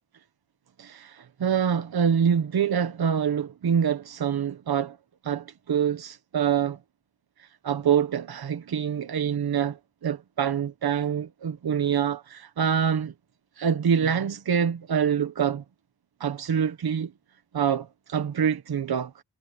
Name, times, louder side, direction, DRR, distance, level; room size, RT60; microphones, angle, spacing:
voice 1, 0.8-5.0 5.2-6.8 7.4-13.1 13.6-15.6 16.2-17.1 17.5-19.2, right 8 dB, 60° right, 1.1 m, -26 dB
wide cardioid pair, 130°, 41 cm